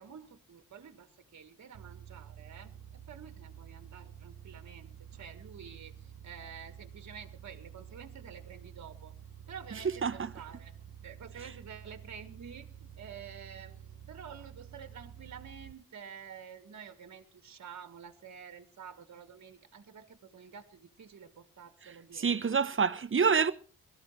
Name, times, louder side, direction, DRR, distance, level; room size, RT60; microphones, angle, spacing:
voice 1, 0.0-4.9 5.2-9.1 9.5-10.7 11.0-22.5, right 7 dB, 50° right, 1.5 m, -49 dB
sound 1, 1.7-15.7, right 9 dB, 70° right, 1.0 m, -50 dB
voice 2, 21.8-23.5, right 6 dB, 35° right, 0.9 m, -28 dB
22.0 x 13.5 x 3.2 m
wide cardioid pair, 105°, 35 cm